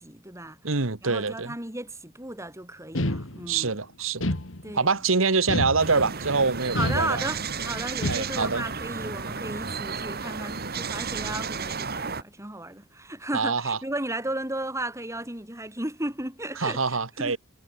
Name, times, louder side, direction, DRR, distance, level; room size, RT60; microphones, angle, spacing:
voice 1, 0.0-0.6 1.0-3.7 4.6-4.9 6.7-17.4, right 1 dB, 15° right, 6.3 m, -34 dB
voice 2, 0.6-1.5 3.5-4.2 4.7-7.2 8.1-8.6 13.3-13.8 16.6-17.4, right 4 dB, 85° right, 1.6 m, -25 dB
sound 1, 2.9-3.7 4.2-5.0 5.5-6.3 6.7-7.6 8.0-8.6, left 1 dB, 70° left, 2.5 m, -30 dB
sound 2, 5.8-12.2, right 5 dB, 50° right, 2.6 m, -33 dB
head